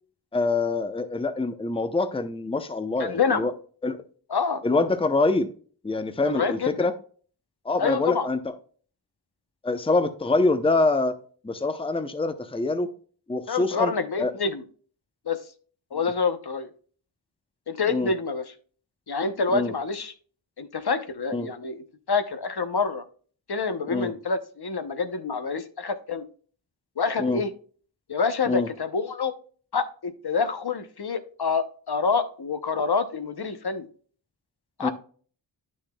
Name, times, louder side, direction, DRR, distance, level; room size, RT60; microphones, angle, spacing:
voice 1, 0.3-3.5 3.8-4.0 4.6-5.5 5.8-6.9 7.6-8.5 9.6-11.2 11.4-12.9 13.3-13.9 14.2-14.3 17.9-18.1 19.5-19.7 21.3-21.5 23.9-24.1 27.2-27.4 28.5-28.7 34.8-34.9, left 3 dB, 10° left, 9 dB, 0.7 m, -25 dB
voice 2, 3.0-3.5 4.3-4.6 6.2-6.9 7.8-8.3 13.5-14.6 15.3-15.4 15.9-16.7 17.7-18.4 19.1-20.1 20.6-23.0 23.5-26.2 27.0-27.5 28.1-29.3 29.7-33.9 34.8-34.9, left 5 dB, 55° left, 10 dB, 0.8 m, -27 dB
9.9 x 6.3 x 2.2 m, 0.43 s
wide cardioid pair, 65°, 47 cm